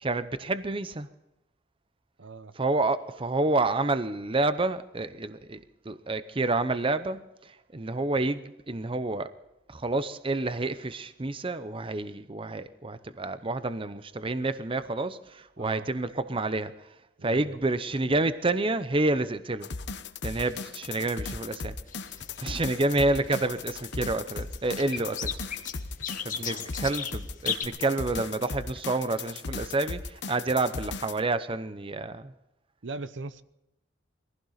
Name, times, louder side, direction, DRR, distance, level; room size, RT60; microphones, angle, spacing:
voice 1, 0.0-1.1 2.5-9.3 9.7-16.7 17.2-19.7 20.2-21.8 22.4-25.3 26.2-32.3, right 2 dB, 30° right, 0.7 m, -29 dB
voice 2, 2.2-2.5 15.6-15.9 17.2-17.6 25.0-25.1 26.3-26.7 32.8-33.4, right 3 dB, 75° right, 0.8 m, -40 dB
sound 1, 19.6-31.2, left 4 dB, 65° left, 1.0 m, -37 dB
sound 2, 21.9-27.6, left 7 dB, 45° left, 1.4 m, -37 dB
22.0 x 16.0 x 4.0 m
head